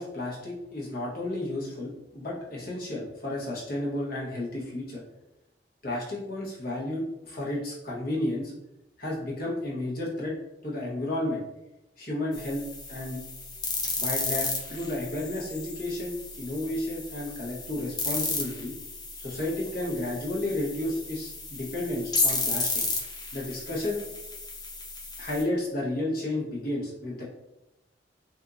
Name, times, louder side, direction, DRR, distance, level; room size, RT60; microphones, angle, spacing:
voice 1, 0.0-5.0 5.8-8.5 9.0-10.3 10.6-11.4 12.0-12.6 12.9-13.2 14.0-18.7 19.2-22.8 23.3-24.0 25.2-27.2, left 1 dB, 55° left, -4 dB, 1.0 m, -32 dB
sound 1, 12.3-25.4, left 3 dB, 20° left, 0.5 m, -33 dB
3.8 x 2.6 x 2.4 m, 0.93 s
head